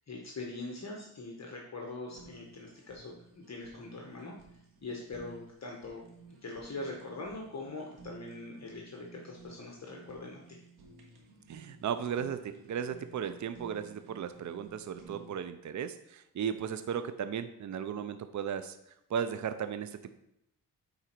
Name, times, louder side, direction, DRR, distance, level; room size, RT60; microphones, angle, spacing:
voice 1, 0.1-4.4 4.8-6.0 6.4-10.6, left 2 dB, 45° left, -1 dB, 1.2 m, -42 dB
Fire, 2.1-15.4, right 4 dB, 90° right, 1.8 m, -55 dB
voice 2, 11.5-18.8 19.1-20.1, right 8 dB, 50° right, 10 dB, 0.6 m, -36 dB
8.9 x 4.0 x 4.6 m, 0.82 s
cardioid pair, 85°, 38 cm